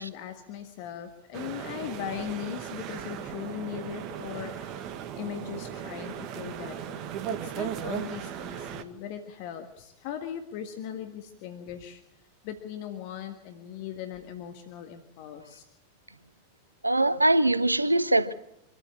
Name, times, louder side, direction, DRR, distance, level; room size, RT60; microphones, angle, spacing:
voice 1, 0.0-12.0 12.4-15.6, left 9 dB, 45° left, 1.6 m, -39 dB
sound 1, 1.3-8.8, right 9 dB, 40° right, 1.5 m, -37 dB
voice 2, 16.8-18.3, right 1 dB, 85° right, 0.9 m, -22 dB
25.0 x 13.5 x 8.4 m
figure-of-eight pair, 90°, 0 cm